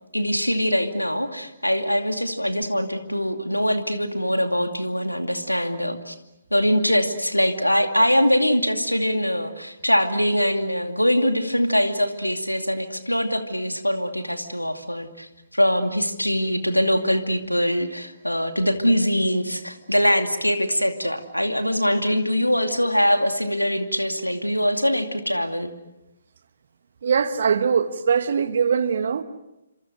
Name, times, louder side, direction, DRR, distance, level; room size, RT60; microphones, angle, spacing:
voice 1, 0.1-6.1 6.5-15.3 15.5-25.7, equal, 90° left, 2.5 m, -23 dB
voice 2, 27.0-29.2, right 6 dB, 50° right, 1.5 m, -21 dB
28.5 x 26.5 x 6.5 m
figure-of-eight pair, 135°, 0 cm